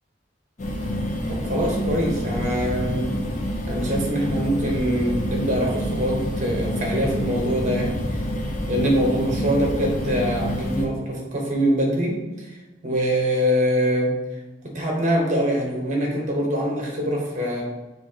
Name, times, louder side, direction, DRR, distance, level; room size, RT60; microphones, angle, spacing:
sound 1, 0.6-10.9, equal, 45° left, 0.7 m, -27 dB
voice 1, 1.3-3.1 3.7-8.2 8.7-12.5 12.8-14.2 14.6-17.6, equal, 45° right, -1 dB, 1.1 m, -24 dB
6.9 x 2.6 x 2.8 m, 1.1 s
head